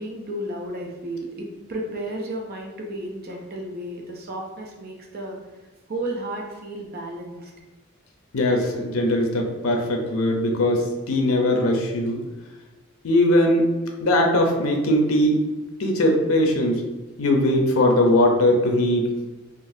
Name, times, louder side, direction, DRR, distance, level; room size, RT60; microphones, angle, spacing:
voice 1, 0.0-5.4 5.9-7.5, right 1 dB, 50° right, 1 dB, 0.6 m, -33 dB
voice 2, 8.3-12.2 13.0-13.6 14.0-15.4 15.8-16.9 17.2-19.1, left 1 dB, 85° left, 2 dB, 0.6 m, -20 dB
3.8 x 2.5 x 2.6 m, 1.2 s
head